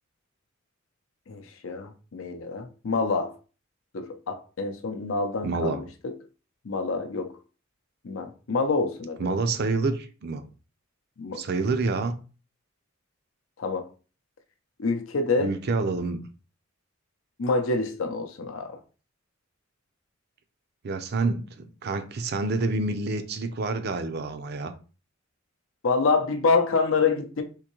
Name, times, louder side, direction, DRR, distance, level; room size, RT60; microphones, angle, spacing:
voice 1, 1.3-3.3 3.9-6.1 6.6-7.3 8.0-9.3 11.2-11.7 13.6-13.9 14.8-15.5 17.4-18.8 25.8-27.4, left 4 dB, 70° left, 0.6 m, -27 dB
voice 2, 5.4-5.8 9.2-10.5 11.3-12.2 15.4-16.2 20.8-24.7, right 3 dB, 55° right, 0.5 m, -28 dB
3.7 x 2.6 x 2.9 m
head